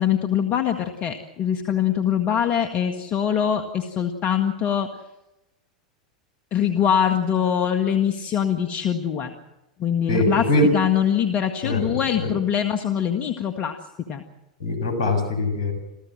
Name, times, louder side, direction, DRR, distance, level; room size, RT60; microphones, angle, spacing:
voice 1, 0.0-4.9 6.5-9.3 9.8-13.8 14.1-14.2, left 9 dB, 45° left, 6 dB, 1.8 m, -23 dB
voice 2, 10.1-10.7 11.6-11.9 12.2-12.3 14.6-15.7, left 1 dB, 70° left, 7 dB, 6.9 m, -22 dB
27.5 x 15.0 x 7.6 m, 0.95 s
hypercardioid pair, 90°, 4 cm